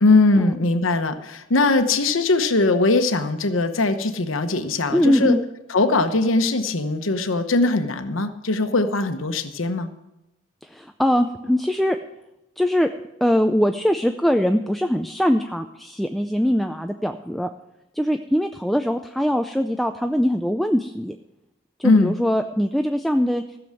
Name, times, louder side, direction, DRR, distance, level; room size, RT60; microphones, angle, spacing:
voice 1, 0.0-5.4 5.7-9.9 21.8-22.1, left 2 dB, 85° left, 8 dB, 1.0 m, -20 dB
voice 2, 4.9-5.4 10.6-12.0 12.6-12.9 13.2-17.5 18.0-21.2 21.8-23.4, equal, ahead, 6 dB, 0.4 m, -22 dB
15.0 x 7.0 x 7.6 m, 0.90 s
head